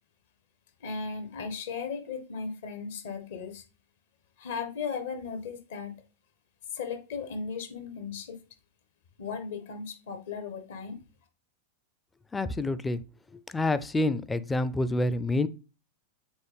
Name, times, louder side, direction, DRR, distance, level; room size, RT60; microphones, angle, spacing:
voice 1, 0.8-3.6 4.4-5.9 6.7-8.4 9.2-11.0, left 5 dB, 60° left, 1.3 m, -36 dB
voice 2, 12.3-13.0 13.3-15.5, left 2 dB, 10° left, 0.4 m, -28 dB
7.8 x 3.9 x 3.4 m
figure-of-eight pair, 90°, 0 cm